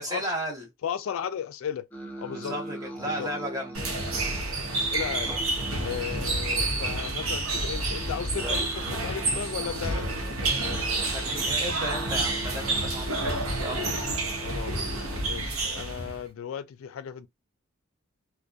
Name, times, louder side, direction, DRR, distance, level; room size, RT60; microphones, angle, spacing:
voice 1, 0.0-0.7 2.3-3.7 11.1-13.9, equal, 15° right, 0.8 m, -34 dB
voice 2, 0.8-1.9 2.2-2.5 3.0-3.3 3.9-4.0 4.7-5.3 5.8-10.1 14.4-14.8 15.2-17.3, left 8 dB, 75° left, 0.3 m, -35 dB
sound 1, 1.9-15.3, right 1 dB, 10° left, 0.5 m, -42 dB
sound 2, 3.7-16.2, right 2 dB, 85° right, 0.8 m, -29 dB
2.7 x 2.1 x 2.3 m
head